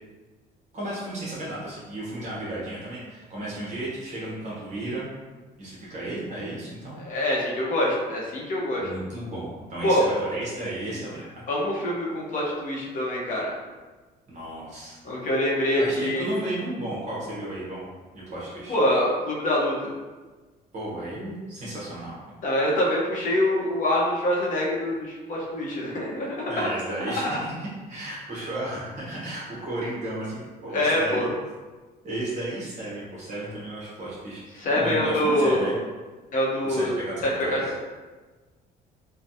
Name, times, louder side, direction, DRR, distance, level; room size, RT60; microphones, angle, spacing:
voice 1, 0.7-5.1 5.6-7.0 8.8-11.5 14.3-15.2 15.8-17.9 18.1-18.8 20.7-22.1 26.5-31.3 32.0-34.4 34.7-35.8 36.6-37.9, right 1 dB, 45° right, -7 dB, 1.1 m, -34 dB
voice 2, 6.9-8.9 9.8-10.1 11.5-13.5 15.0-16.4 18.7-19.9 22.4-26.7 27.2-27.3 30.7-31.3 34.5-35.7 36.3-37.0 37.5-37.6, left 1 dB, 50° left, -4 dB, 0.9 m, -25 dB
3.4 x 2.3 x 2.7 m, 1.3 s
cardioid pair, 110°, 17 cm